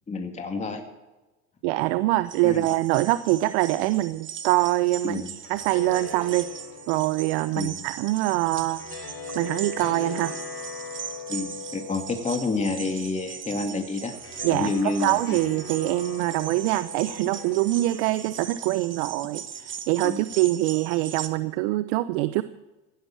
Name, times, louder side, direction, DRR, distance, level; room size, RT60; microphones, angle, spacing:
voice 1, 0.1-0.8 2.4-2.7 5.0-5.3 7.5-7.8 11.3-14.1 14.5-15.4 20.0-20.2, left 3 dB, 20° left, 4 dB, 2.1 m, -29 dB
voice 2, 1.6-6.5 6.9-8.8 9.3-10.4 14.4-22.4, right 17 dB, 65° right, 15 dB, 0.8 m, -24 dB
sound 1, 2.3-21.3, right 8 dB, 35° right, 1.4 m, -39 dB
sound 2, 5.3-20.5, left 6 dB, 40° left, 4.4 m, -42 dB
16.0 x 11.5 x 7.4 m, 1.1 s
hypercardioid pair, 85°, 35 cm